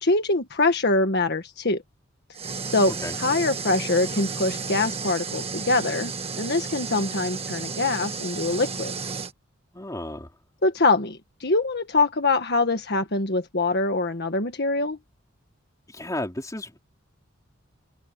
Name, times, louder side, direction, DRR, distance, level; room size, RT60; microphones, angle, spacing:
voice 1, 0.0-1.8 2.7-8.9 10.6-15.0, left 2 dB, 55° left, 1.6 m, -24 dB
sound 1, 2.3-9.3, right 5 dB, 30° right, 1.5 m, -33 dB
voice 2, 9.7-10.3 15.9-16.8, left 1 dB, 15° left, 3.6 m, -33 dB
open air
head